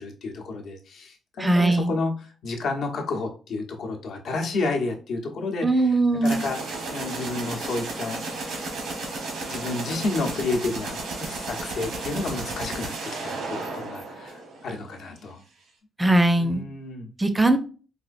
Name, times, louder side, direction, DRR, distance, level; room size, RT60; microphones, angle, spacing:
voice 1, 0.0-2.1 2.4-6.6 6.9-8.2 8.9-15.4 16.4-17.1, left 3 dB, 70° left, 3 dB, 0.8 m, -31 dB
voice 2, 1.4-1.9 5.6-6.4 16.0-16.6 17.2-17.6, right 2 dB, 15° right, 9 dB, 0.4 m, -20 dB
sound 1, 6.2-14.8, right 3 dB, 85° right, 1.0 m, -33 dB
4.2 x 2.5 x 2.4 m, 0.37 s
cardioid pair, 90°, 0 cm